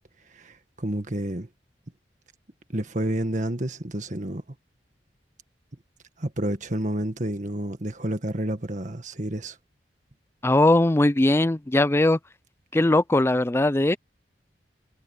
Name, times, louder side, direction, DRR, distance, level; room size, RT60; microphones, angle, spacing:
voice 1, 0.3-1.5 2.7-4.4 6.2-9.6, right 1 dB, 45° right, 1.7 m, -29 dB
voice 2, 10.4-12.2 12.7-14.0, left 1 dB, 15° left, 0.5 m, -20 dB
head